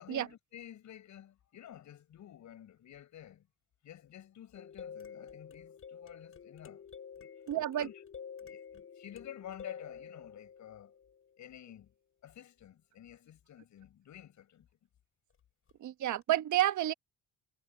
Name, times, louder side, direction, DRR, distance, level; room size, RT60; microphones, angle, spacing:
voice 1, 0.0-3.5 3.8-6.8 7.2-8.0 8.4-11.0 11.4-11.9 12.2-14.7, left 11 dB, 70° left, 8.0 m, -51 dB
sound 1, 4.5-11.4 15.7-15.8 16.2-16.3, left 7 dB, 45° left, 6.2 m, -49 dB
voice 2, 7.5-7.9 15.8-16.9, right 13 dB, 75° right, 1.2 m, -30 dB
cardioid pair, 90°, 30 cm